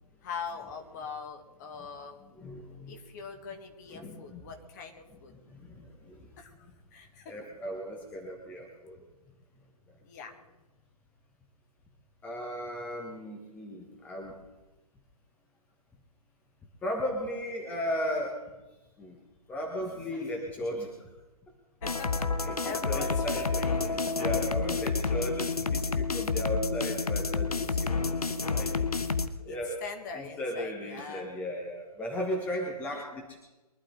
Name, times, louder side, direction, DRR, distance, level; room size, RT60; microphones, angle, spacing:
voice 1, 0.2-2.2 2.9-5.3 6.4-7.4 10.0-10.3 19.8-20.4 21.8-23.8 29.4-31.3 32.9-33.0, left 5 dB, 30° left, 4 dB, 2.0 m, -42 dB
voice 2, 2.2-3.0 3.9-4.4 5.5-6.3 7.3-9.0 12.2-14.3 16.8-18.4 19.0-19.2 19.5-20.9 22.4-28.0 28.5-29.0 29.4-29.8 30.1-33.4, equal, 10° left, 0 dB, 1.5 m, -36 dB
sound 1, 21.8-29.3, left 4 dB, 70° left, 1.2 m, -29 dB
23.5 x 12.0 x 3.9 m, 1.1 s
figure-of-eight pair, 140°, 20 cm